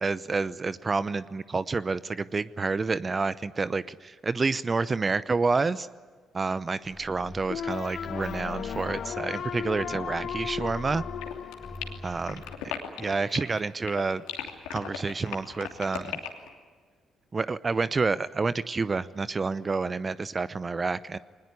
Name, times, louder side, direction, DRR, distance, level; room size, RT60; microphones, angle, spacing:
voice 1, 0.0-5.9 6.3-11.0 12.0-12.4 13.0-14.2 14.7-16.2 17.3-21.2, right 4 dB, 35° right, 16 dB, 0.7 m, -29 dB
sound 1, 6.8-12.6, left 2 dB, 35° left, 4.3 m, -43 dB
sound 2, 7.5-12.5, left 9 dB, 65° left, 0.9 m, -36 dB
sound 3, 11.2-13.6 13.9-16.5, left 10 dB, 90° left, 2.9 m, -36 dB
22.0 x 20.0 x 9.8 m, 1.5 s
supercardioid pair, 55°, 0 cm